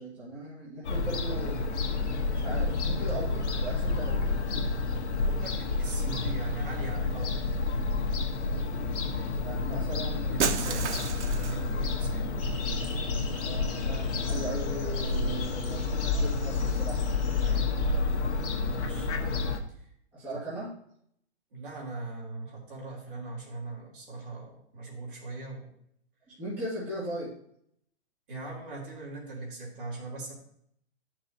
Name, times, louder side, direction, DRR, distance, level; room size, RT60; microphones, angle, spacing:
voice 1, 0.0-1.7 2.3-4.3 9.4-10.8 13.4-17.0 20.1-20.7 26.3-27.3, right 1 dB, 5° right, -12 dB, 1.9 m, -38 dB
Fowl / Gull seagull, 0.8-19.6, left 3 dB, 80° left, 1.5 m, -29 dB
voice 2, 4.9-7.4 10.3-12.3 17.4-18.0 18.8-19.1 19.7-19.8 20.3-20.5 21.5-25.7 28.3-30.3, right 3 dB, 50° right, -3 dB, 2.9 m, -40 dB
Shatter, 10.4-11.7, right 7 dB, 90° right, 0.9 m, -31 dB
sound 1, 12.4-17.5, left 4 dB, 55° left, 1.9 m, -45 dB
11.5 x 6.1 x 2.8 m, 0.69 s
hypercardioid pair, 180°, 34 cm